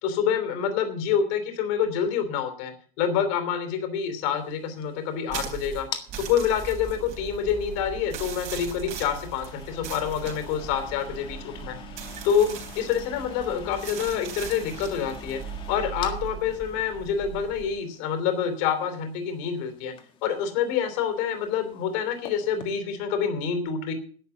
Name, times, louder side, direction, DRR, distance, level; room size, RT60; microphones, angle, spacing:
voice 1, 0.0-2.7 3.0-5.9 6.2-11.8 12.2-15.4 15.7-19.9 20.2-23.9, left 8 dB, 60° left, 7 dB, 3.1 m, -27 dB
sound 1, 4.1-22.8, left 7 dB, 30° left, 1.7 m, -46 dB
sound 2, 5.3-17.7, right 7 dB, 40° right, 3.7 m, -39 dB
11.0 x 10.0 x 7.0 m, 0.43 s
cardioid pair, 170°, 18 cm